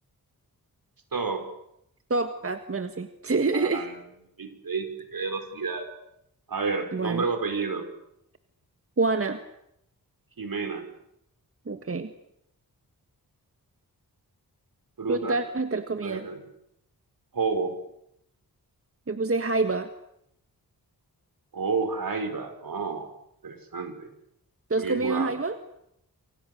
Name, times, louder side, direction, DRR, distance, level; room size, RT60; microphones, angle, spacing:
voice 1, 1.1-1.5 3.5-3.9 4.4-5.9 6.5-7.9 10.4-10.9 15.0-15.4 16.0-16.4 17.3-17.7 21.5-23.1 23.4-24.1 24.8-25.3, right 4 dB, 65° right, 7 dB, 5.1 m, -30 dB
voice 2, 2.1-3.9 6.9-7.2 9.0-9.4 11.6-12.1 15.1-16.3 19.1-19.9 24.7-25.6, right 3 dB, 35° right, 8 dB, 1.6 m, -27 dB
29.0 x 25.5 x 6.8 m, 0.78 s
wide cardioid pair, 115°, 38 cm